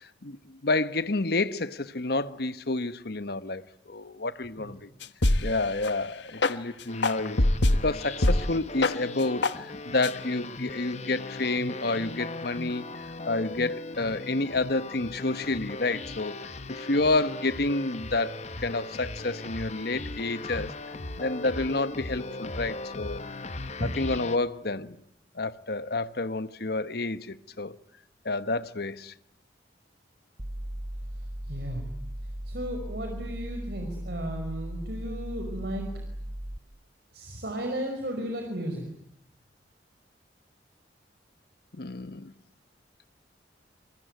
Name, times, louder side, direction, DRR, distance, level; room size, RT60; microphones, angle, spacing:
voice 1, 0.0-4.9 5.4-20.7 21.2-23.2 23.8-25.0 25.3-27.8 28.2-29.1 41.7-42.3, left 2 dB, 60° left, 1.1 m, -29 dB
sound 1, 5.0-5.5 5.8-5.9 6.4-6.5 7.0-7.8 8.2-8.4 8.8-8.9 9.4-9.5 10.0-10.1, left 2 dB, 75° left, 1.4 m, -22 dB
sound 2, 6.9-24.4, left 2 dB, 40° left, 1.3 m, -38 dB
sound 3, 30.4-36.6, right 1 dB, 35° right, 1.4 m, -37 dB
voice 2, 31.4-32.0 32.4-35.8 37.1-38.8, equal, 60° right, 5.5 m, -34 dB
28.0 x 23.0 x 9.3 m
head